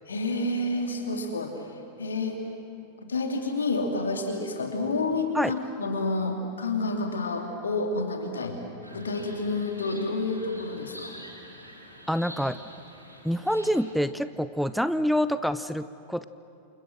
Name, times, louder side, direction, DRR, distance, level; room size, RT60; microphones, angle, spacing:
voice 1, 0.1-2.4 3.0-8.6 8.9-11.2, left 2 dB, 70° left, 3 dB, 3.2 m, -29 dB
sound 1, 8.8-13.9, equal, 90° right, 3.3 m, -46 dB
voice 2, 12.1-12.6 13.2-16.2, equal, ahead, 13 dB, 0.6 m, -26 dB
29.0 x 27.5 x 6.5 m, 2.5 s
figure-of-eight pair, 90°, 0 cm